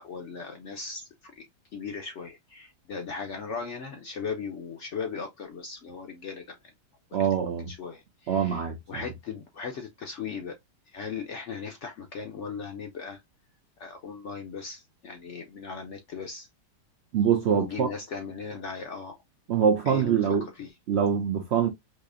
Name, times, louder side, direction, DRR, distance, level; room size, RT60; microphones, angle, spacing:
voice 1, 0.0-1.5 1.7-6.7 7.1-10.5 10.9-13.2 13.8-16.5 17.5-19.2 19.9-20.2 20.6-20.7, left 5 dB, 65° left, 0.7 m, -38 dB
voice 2, 7.1-7.7 8.3-9.1 17.1-17.9 19.5-20.5 20.9-21.7, right 8 dB, 85° right, 0.5 m, -24 dB
4.0 x 2.8 x 2.4 m
omnidirectional pair, 1.8 m